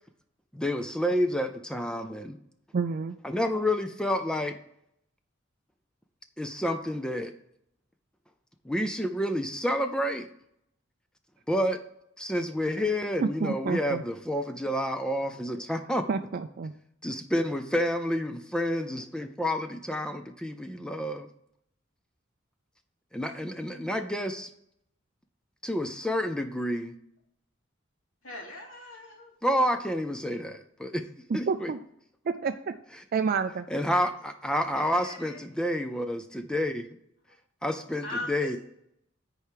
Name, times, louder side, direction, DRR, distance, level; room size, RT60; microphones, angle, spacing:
voice 1, 0.5-2.4 3.2-4.6 6.4-7.3 8.6-10.3 11.5-11.8 12.2-16.1 17.0-21.3 23.1-24.5 25.6-26.9 29.4-31.0 31.3-31.7 33.7-36.9 37.6-38.6, equal, 5° left, 7 dB, 0.5 m, -29 dB
voice 2, 2.7-3.2 13.2-14.0 16.1-16.7 31.3-31.8 32.3-32.8 33.1-33.7, right 5 dB, 50° right, 7 dB, 0.4 m, -29 dB
voice 3, 28.2-29.3 34.7-35.4 38.0-38.6, left 2 dB, 90° left, -2 dB, 3.0 m, -39 dB
9.9 x 4.7 x 4.7 m, 0.73 s
head